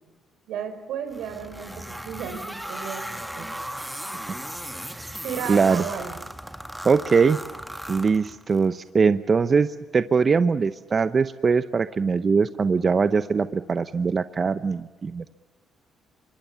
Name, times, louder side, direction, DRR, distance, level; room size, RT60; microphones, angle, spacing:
voice 1, 0.5-3.1 3.3-3.5 5.2-6.2, right 7 dB, 85° right, 8 dB, 4.0 m, -34 dB
sound 1, 1.1-8.7, equal, 5° right, 1.6 m, -36 dB
voice 2, 5.5-5.8 6.8-7.4 7.9-9.7 9.9-15.3, right 5 dB, 40° right, 12 dB, 0.8 m, -22 dB
26.0 x 23.5 x 7.0 m, 1.4 s
cardioid pair, 90°, 0 cm